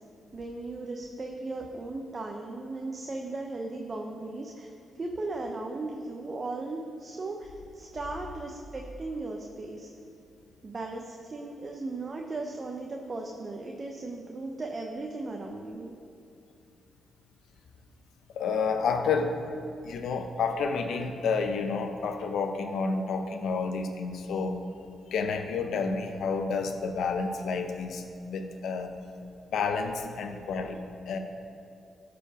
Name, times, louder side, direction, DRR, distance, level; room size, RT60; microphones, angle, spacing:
voice 1, 0.3-9.9 10.6-16.0, right 2 dB, 40° right, 1 dB, 0.8 m, -37 dB
voice 2, 18.4-19.4 19.8-24.6 25.1-29.0 29.5-31.2, left 5 dB, 80° left, 6 dB, 0.8 m, -30 dB
12.0 x 5.1 x 5.0 m, 2.6 s
supercardioid pair, 60°, 0 cm